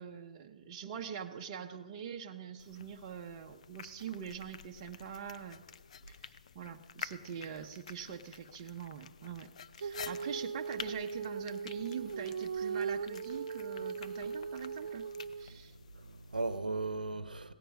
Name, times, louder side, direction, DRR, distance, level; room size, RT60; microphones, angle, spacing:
voice 1, 0.0-5.6 6.1-9.5 9.8-15.1 15.4-15.7, right 8 dB, 30° right, 1.0 m, -44 dB
sound 1, 2.6-16.6, left 7 dB, 50° left, 0.6 m, -50 dB
Female singing, 9.8-15.5, right 5 dB, 50° right, 0.5 m, -39 dB
voice 2, 15.5-17.5, right 3 dB, 75° right, 0.9 m, -38 dB
17.0 x 14.5 x 5.4 m
figure-of-eight pair, 135°, 5 cm